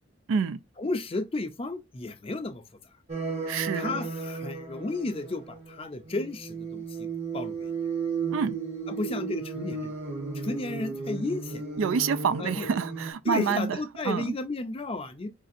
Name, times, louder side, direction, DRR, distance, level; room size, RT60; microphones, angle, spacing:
voice 1, 0.8-2.6 3.7-7.1 7.3-7.7 8.9-9.9 10.3-11.6 12.4-12.7 13.2-15.3, left 2 dB, 30° left, 0.5 m, -33 dB
sound 1, 3.1-5.8 6.1-13.1, right 4 dB, 30° right, 0.8 m, -34 dB
voice 2, 3.4-4.0 8.3-8.6 11.8-13.8 14.0-14.4, right 6 dB, 75° right, 0.3 m, -27 dB
4.9 x 2.6 x 2.5 m
head